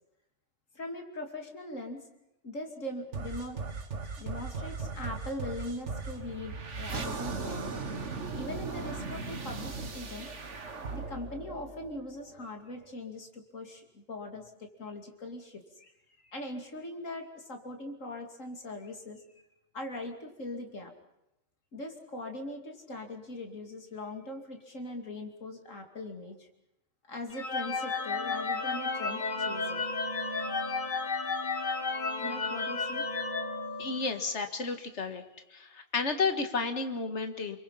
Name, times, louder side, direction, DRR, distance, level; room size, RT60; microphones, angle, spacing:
voice 1, 0.7-2.1 2.4-3.6 4.2-7.8 8.3-10.3 10.9-15.9 16.2-19.3 19.7-20.9 21.7-26.5 27.1-29.8 32.2-33.1, left 1 dB, 75° left, 4 dB, 3.2 m, -41 dB
sound 1, 3.1-12.5, right 4 dB, 65° right, 2.0 m, -38 dB
sound 2, 27.3-34.3, left 3 dB, 40° left, 1.6 m, -33 dB
voice 2, 33.8-35.2 35.5-37.6, left 4 dB, 60° left, 7 dB, 2.2 m, -32 dB
29.5 x 22.5 x 5.7 m, 0.87 s
omnidirectional pair, 1.3 m